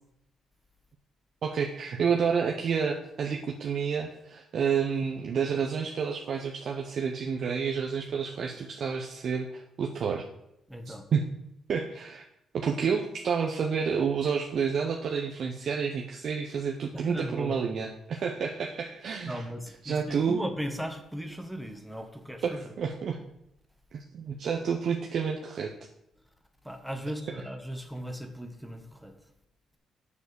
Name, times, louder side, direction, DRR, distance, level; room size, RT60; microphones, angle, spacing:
voice 1, 1.4-10.2 10.9-11.3 11.7-12.2 12.5-19.4 19.8-20.4 22.4-23.2 23.9-25.7, right 6 dB, 60° right, 1 dB, 0.9 m, -29 dB
voice 2, 10.7-11.1 16.9-17.6 19.3-22.8 26.6-29.1, equal, ahead, 5 dB, 1.5 m, -37 dB
7.2 x 6.9 x 6.9 m, 0.82 s
cardioid pair, 90°, 0 cm